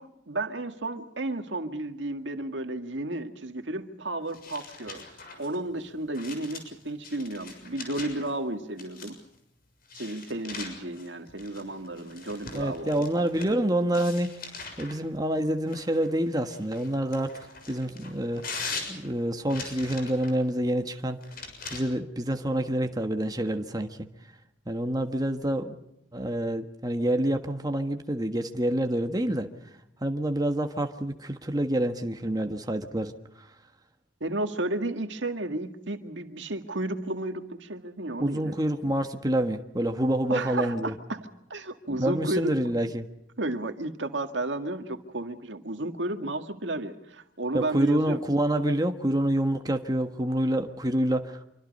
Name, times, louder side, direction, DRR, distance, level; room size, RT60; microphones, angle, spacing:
voice 1, 0.0-5.0 5.4-9.2 9.9-13.6 34.2-38.6 40.3-42.5 43.4-48.2, right 2 dB, 70° right, 7 dB, 2.0 m, -33 dB
sound 1, 4.3-8.3 8.8-9.4 9.9-13.6 13.9-15.0 15.7-20.4 21.2-21.8, left 4 dB, 50° left, 6.8 m, -41 dB
voice 2, 12.5-14.3 14.8-17.4 17.7-18.6 18.9-21.2 21.7-24.0 24.7-25.8 26.1-29.5 30.0-33.5 38.2-40.9 41.9-43.1 47.5-51.5, right 1 dB, 20° right, 5 dB, 1.4 m, -27 dB
26.5 x 24.5 x 5.4 m, 0.79 s
head